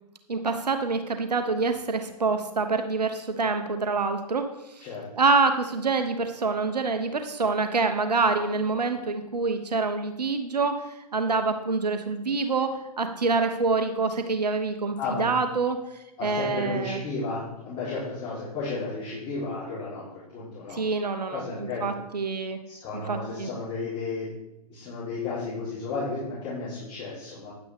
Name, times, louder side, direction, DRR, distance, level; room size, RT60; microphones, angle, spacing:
voice 1, 0.3-4.9 5.1-17.0 20.7-22.6 23.1-23.5, right 4 dB, 85° right, 7 dB, 1.0 m, -26 dB
voice 2, 16.2-20.8 21.3-22.0 22.7-24.3 24.7-27.5, left 3 dB, 25° left, -9 dB, 3.9 m, -33 dB
10.0 x 9.1 x 3.6 m, 0.92 s
hypercardioid pair, 120°, 20 cm